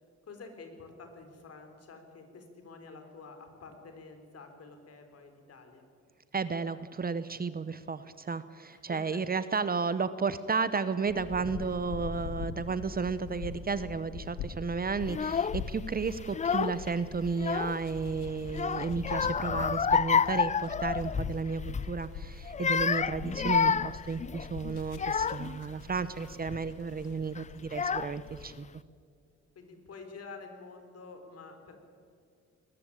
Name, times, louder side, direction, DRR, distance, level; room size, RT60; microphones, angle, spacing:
voice 1, 0.3-5.9 8.7-9.2 29.6-31.8, left 4 dB, 55° left, 6 dB, 4.0 m, -49 dB
voice 2, 6.3-28.7, right 5 dB, 30° right, 14 dB, 0.9 m, -33 dB
sound 1, 11.0-28.4, left 5 dB, 85° left, 1.9 m, -43 dB
Child speech kid speaking / Crying sobbing, 15.1-15.6 16.2-16.9 17.2-18.0 18.5-21.4 21.7-21.9 22.4-25.6 26.2-26.6 27.3-27.4 27.7-28.4, left 6 dB, 25° left, 0.4 m, -29 dB
20.5 x 14.0 x 9.8 m, 2.2 s
cardioid pair, 90°, 30 cm